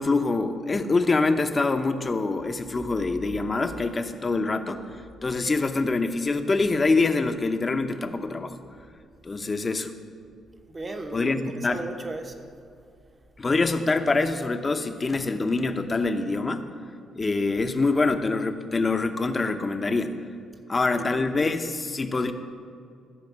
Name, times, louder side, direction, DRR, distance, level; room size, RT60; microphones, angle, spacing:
voice 1, 0.0-4.8 5.2-8.6 9.2-9.9 11.1-11.8 13.4-16.7 17.2-20.1 20.7-22.3, left 3 dB, 30° left, 8 dB, 0.8 m, -25 dB
voice 2, 10.7-12.5 20.9-21.3, right 2 dB, 30° right, 5 dB, 1.1 m, -36 dB
14.0 x 4.9 x 7.3 m, 2.4 s
cardioid pair, 90°, 0 cm